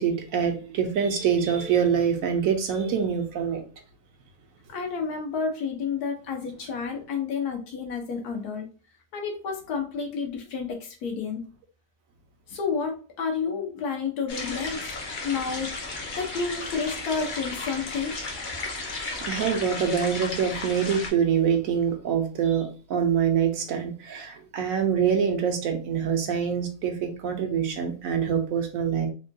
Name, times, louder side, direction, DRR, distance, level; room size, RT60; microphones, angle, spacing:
voice 1, 0.0-3.6 19.2-29.1, right 7 dB, 70° right, 0.9 m, -25 dB
voice 2, 4.7-8.7 9.1-11.4 12.5-14.9 15.2-18.3, left 5 dB, 85° left, 1.3 m, -30 dB
sound 1, 14.3-21.1, left 3 dB, 50° left, 0.6 m, -34 dB
3.4 x 2.2 x 2.6 m
omnidirectional pair, 1.6 m